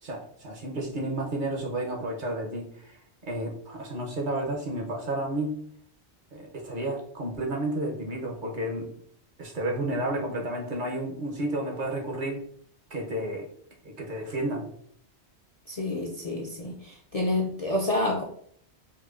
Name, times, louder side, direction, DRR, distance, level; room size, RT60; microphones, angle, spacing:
voice 1, 0.0-5.6 6.3-8.9 9.4-12.4 12.9-13.5 13.8-14.7, right 1 dB, 50° right, 0 dB, 0.8 m, -31 dB
voice 2, 15.7-18.2, left 2 dB, 50° left, -2 dB, 0.4 m, -28 dB
4.4 x 2.6 x 2.4 m, 0.64 s
omnidirectional pair, 1.1 m